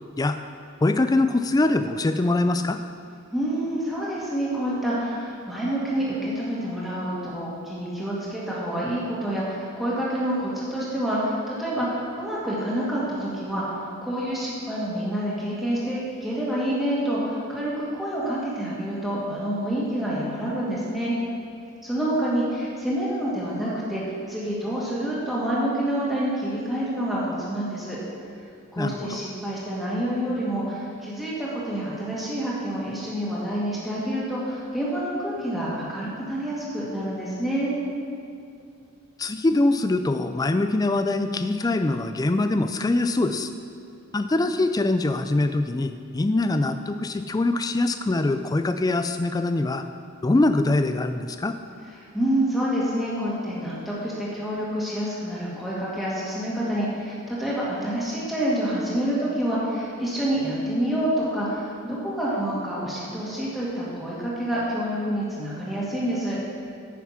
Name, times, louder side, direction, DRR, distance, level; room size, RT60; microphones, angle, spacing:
voice 1, 0.8-2.8 28.8-29.2 39.2-43.5 44.1-49.9 50.2-51.5, left 2 dB, 15° left, 9 dB, 0.3 m, -23 dB
voice 2, 3.3-21.1 21.8-24.0 24.3-28.0 28.7-37.7 51.9-66.4, right 1 dB, ahead, -8 dB, 1.8 m, -27 dB
9.3 x 5.9 x 5.7 m, 2.4 s
head